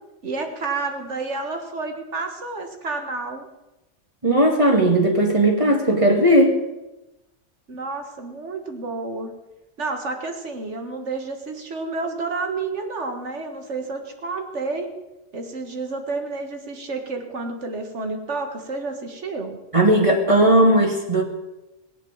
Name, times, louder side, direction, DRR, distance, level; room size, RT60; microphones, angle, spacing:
voice 1, 0.2-3.5 7.7-9.3 9.8-14.9 15.3-19.6, right 3 dB, 70° right, 5 dB, 2.0 m, -30 dB
voice 2, 4.2-6.6 19.7-21.2, right 1 dB, 25° right, 2 dB, 2.0 m, -17 dB
18.5 x 8.5 x 7.2 m, 1.0 s
omnidirectional pair, 1.2 m